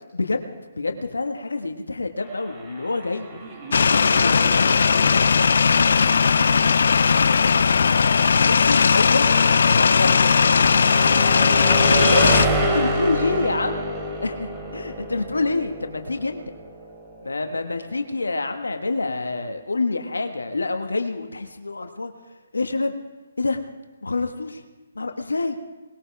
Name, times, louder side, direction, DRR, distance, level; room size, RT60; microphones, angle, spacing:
voice 1, 0.1-3.3 3.9-4.7 7.5-7.6 8.3-9.3 9.7-10.1 11.4-11.6 11.9-13.9 14.2-16.4 17.2-22.1 22.5-22.9 23.4-23.6 24.0-24.6 24.9-25.6, left 3 dB, 85° left, 6 dB, 1.5 m, -27 dB
sound 1, 2.2-18.0, right 1 dB, 15° right, 2.9 m, -30 dB
voice 2, 3.3-8.1 11.7-13.5, right 2 dB, 30° right, -3 dB, 6.9 m, -39 dB
sound 2, 3.7-12.5, left 5 dB, 65° left, 0.4 m, -18 dB
20.0 x 19.5 x 3.5 m, 1.2 s
figure-of-eight pair, 145°, 0 cm